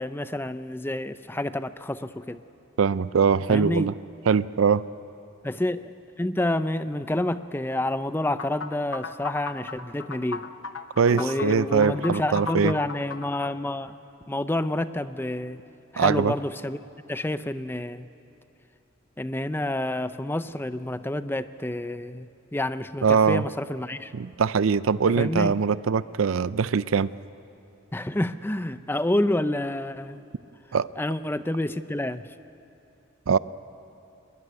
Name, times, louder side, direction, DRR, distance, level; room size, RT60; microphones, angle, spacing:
voice 1, 0.0-2.4 3.5-3.9 5.4-5.9 6.2-10.5 11.1-14.0 14.3-15.6 15.9-16.8 17.1-18.1 19.2-24.1 25.2-25.6 27.9-30.2 31.0-32.2, left 1 dB, 10° left, 12 dB, 0.5 m, -28 dB
voice 2, 2.8-3.9 4.3-4.8 11.0-12.7 16.0-16.3 23.0-23.4 24.1-27.1 30.7-30.9 33.3-33.4, right 6 dB, 85° right, 17 dB, 0.5 m, -22 dB
sound 1, 8.4-13.5, left 4 dB, 85° left, 1.1 m, -36 dB
23.0 x 20.5 x 9.9 m, 2.8 s
head